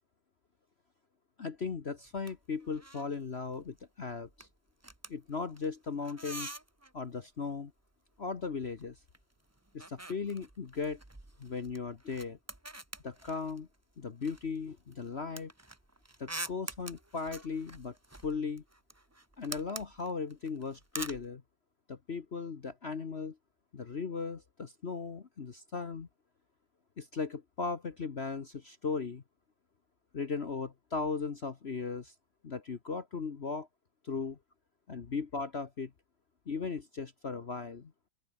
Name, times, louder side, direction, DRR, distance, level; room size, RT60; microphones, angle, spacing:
voice 1, 1.4-4.5 5.1-6.5 6.9-7.7 8.2-9.0 9.7-11.0 11.4-12.4 13.0-13.7 14.0-15.5 16.2-18.0 18.2-18.6 19.4-21.4 21.9-23.4 23.7-26.1 27.0-29.2 30.1-32.1 32.4-33.7 34.0-34.4 34.9-35.9 36.5-37.9, left 5 dB, 40° left, 1.2 m, -37 dB
sound 1, 2.0-2.4 2.6-3.2 3.4-3.8 4.1-7.0 8.2-9.2 9.5-13.8 14.2-21.3, right 2 dB, 10° right, 1.0 m, -46 dB
open air
omnidirectional pair, 2.1 m